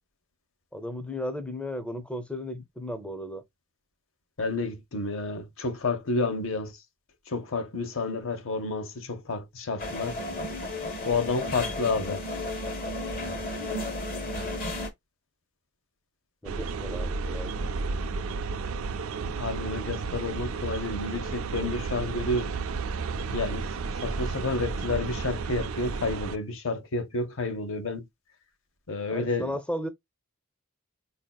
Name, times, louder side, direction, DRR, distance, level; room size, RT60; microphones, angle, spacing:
voice 1, 0.7-3.4 16.4-17.7 29.1-29.9, left 1 dB, 5° left, 0.5 m, -35 dB
voice 2, 4.4-6.8 7.3-10.2 11.0-12.2 19.2-22.5 23.3-23.7 24.0-28.1 28.9-29.5, left 3 dB, 65° left, 0.8 m, -30 dB
sound 1, 9.8-14.9, left 1 dB, 40° left, 1.0 m, -33 dB
sound 2, 16.4-26.4, right 4 dB, 75° right, 0.4 m, -32 dB
4.4 x 2.7 x 2.2 m
head